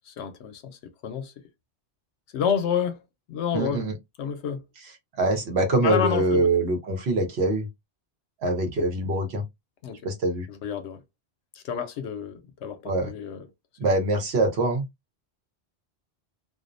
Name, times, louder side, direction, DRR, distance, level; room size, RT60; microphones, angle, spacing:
voice 1, 0.1-1.3 2.3-3.0 3.3-3.8 4.2-4.6 5.8-6.5 9.8-10.0 10.5-11.0 11.5-13.5, left 7 dB, 80° left, 0.9 m, -29 dB
voice 2, 3.5-3.9 5.2-7.7 8.4-9.4 10.0-10.5 12.9-13.1 13.8-14.8, right 2 dB, 70° right, 1.0 m, -24 dB
2.5 x 2.0 x 2.4 m
omnidirectional pair, 1.1 m